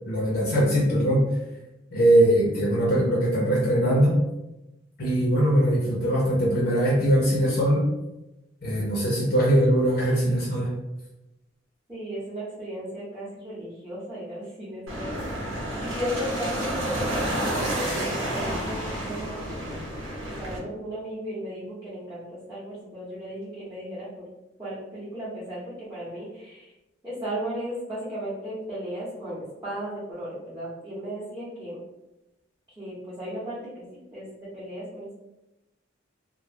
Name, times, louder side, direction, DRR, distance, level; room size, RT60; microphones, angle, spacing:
voice 1, 0.0-1.2 1.9-4.2 5.0-7.9 8.6-10.7, right 1 dB, 55° left, -4 dB, 0.5 m, -21 dB
voice 2, 11.9-15.5 15.8-19.7 20.2-24.3 24.6-26.7 27.0-31.8 32.8-34.3 34.5-35.1, equal, 15° right, -12 dB, 0.7 m, -35 dB
sound 1, 14.9-20.6, right 1 dB, 90° right, 0.9 m, -30 dB
2.2 x 2.0 x 3.2 m, 0.97 s
head